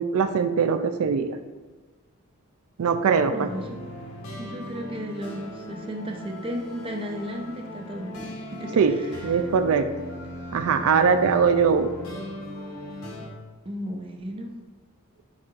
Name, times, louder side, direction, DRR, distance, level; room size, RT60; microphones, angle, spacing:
voice 1, 0.0-1.4 2.8-3.5 8.8-9.0 9.2-9.9 10.5-11.9, right 6 dB, 85° right, 8 dB, 0.4 m, -21 dB
voice 2, 3.3-3.8 4.4-9.5 13.6-14.6, equal, 25° right, 2 dB, 0.7 m, -35 dB
sound 1, 3.5-13.3, left 1 dB, 75° left, 1.5 m, -38 dB
9.5 x 4.3 x 2.5 m, 1.3 s
head